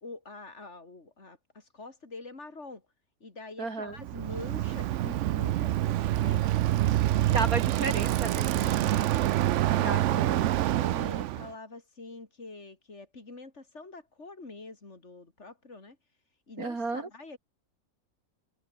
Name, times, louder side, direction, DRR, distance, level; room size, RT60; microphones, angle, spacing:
voice 1, 0.0-2.8 3.2-6.6 8.5-9.1 9.6-10.4 10.7-16.0 16.5-17.4, left 3 dB, 50° left, 3.7 m, -45 dB
voice 2, 3.6-4.0 7.3-8.5 9.8-10.6 16.6-17.1, right 3 dB, 85° right, 4.2 m, -33 dB
Bicycle, 4.0-11.5, right 14 dB, 65° right, 0.8 m, -26 dB
omnidirectional pair, 1.5 m